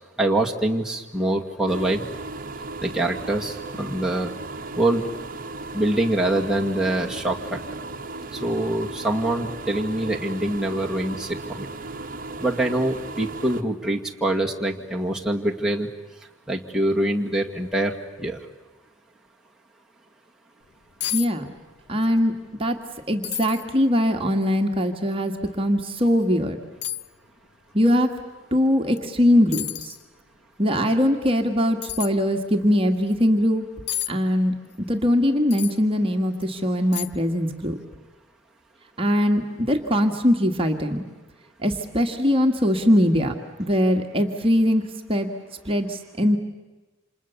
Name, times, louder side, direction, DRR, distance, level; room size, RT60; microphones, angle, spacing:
voice 1, 0.2-2.0 2.8-4.3 4.8-5.1 5.7-7.6 8.3-11.7 12.4-15.9 16.5-17.9 18.2-18.4, right 1 dB, 5° right, -2 dB, 2.1 m, -24 dB
sound 1, 1.7-13.6, right 3 dB, 45° right, 1.3 m, -36 dB
sound 2, 20.6-20.7 21.0-21.3 21.6-22.1 22.5-22.6 23.2-23.7 24.3-24.4 25.9-26.0 26.8-27.1 29.0-29.1 29.5-30.0 31.8-32.1 33.9-34.1 35.5-35.8 36.3-36.4 36.9-37.3 37.6-37.7, left 12 dB, 55° left, 0.8 m, -31 dB
voice 2, 21.1-21.5 21.9-22.3 22.6-22.8 23.1-26.6 27.7-28.1 28.5-30.0 30.6-33.6 34.1-37.8 39.0-41.0 41.6-44.8 45.1-45.3 45.7-46.4, equal, 30° right, 3 dB, 1.8 m, -21 dB
29.5 x 27.0 x 7.1 m, 1.2 s
head